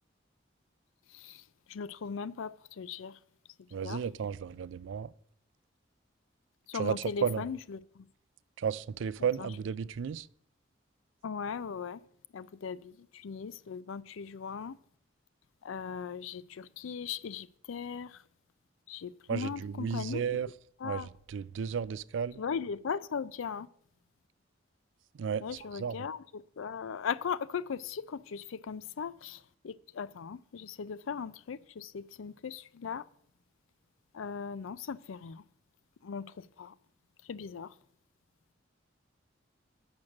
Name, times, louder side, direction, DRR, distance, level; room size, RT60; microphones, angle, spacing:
voice 1, 1.7-3.1 3.8-4.0 6.7-8.0 9.4-9.5 11.2-12.0 12.3-14.8 15.6-18.2 18.9-20.4 20.8-21.1 22.4-23.7 25.4-33.0 34.1-35.4 36.0-36.3 36.6-36.7 37.3-37.7, left 6 dB, 85° left, 0.4 m, -38 dB
voice 2, 3.7-5.1 6.7-7.4 8.6-10.2 19.3-20.5 20.8-21.0 21.3-22.4 25.2-25.5 25.8-25.9, right 7 dB, 70° right, 0.3 m, -33 dB
8.6 x 6.1 x 6.3 m
head